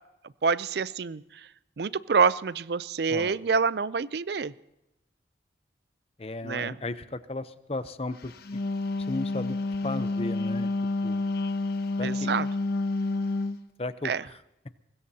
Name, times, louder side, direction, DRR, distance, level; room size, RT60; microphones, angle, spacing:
voice 1, 0.4-1.2 1.8-4.5 6.4-6.8 12.0-12.5 14.0-14.2, right 5 dB, 60° right, 18 dB, 0.4 m, -26 dB
voice 2, 6.2-8.3 9.1-10.7 11.0-11.2 12.0-12.3 13.8-14.4, left 2 dB, 30° left, 13 dB, 0.7 m, -35 dB
Wind instrument woodwind instrument, 8.3-13.6, left 2 dB, 55° left, 0.9 m, -29 dB
24.0 x 20.5 x 2.8 m, 0.91 s
head